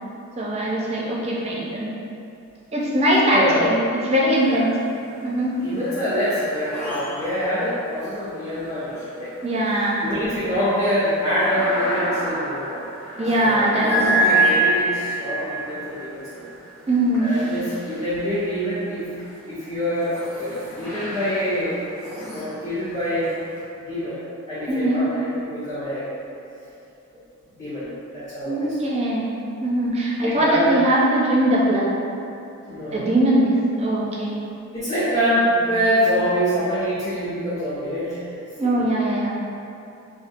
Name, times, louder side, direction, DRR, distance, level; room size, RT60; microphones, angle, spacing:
voice 1, 0.4-1.9 2.7-3.7 4.0-4.7 5.2-5.5 9.4-10.2 13.2-14.3 16.9-17.4 24.7-25.0 28.4-29.3 29.6-31.9 32.9-34.4 38.5-39.3, right 1 dB, 30° right, -5 dB, 0.5 m, -21 dB
voice 2, 3.3-3.7 4.4-4.7 5.6-9.3 10.0-12.9 13.4-16.4 17.2-19.1 19.5-21.8 22.3-23.4 23.8-24.2 24.5-26.1 27.5-28.5 28.9-29.0 30.2-30.7 32.7-33.1 34.7-38.3 38.6-38.8, equal, 40° left, -16 dB, 1.1 m, -25 dB
sound 1, 4.3-5.0 5.3-18.5 19.1-23.6, right 1 dB, 10° left, 0.9 m, -28 dB
4.2 x 2.6 x 2.5 m, 2.7 s
head